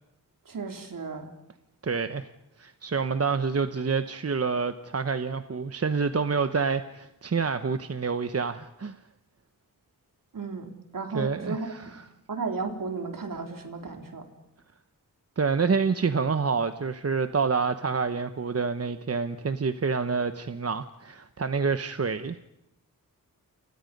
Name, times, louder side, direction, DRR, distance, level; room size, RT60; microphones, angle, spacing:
voice 1, 0.5-1.3 10.3-12.0 12.3-14.3, right 4 dB, 65° right, 3.8 m, -34 dB
voice 2, 1.8-2.3 2.6-9.0 11.1-12.0 15.4-22.4, right 5 dB, 45° right, 1.1 m, -27 dB
30.0 x 29.0 x 5.4 m
wide cardioid pair, 90°, 35 cm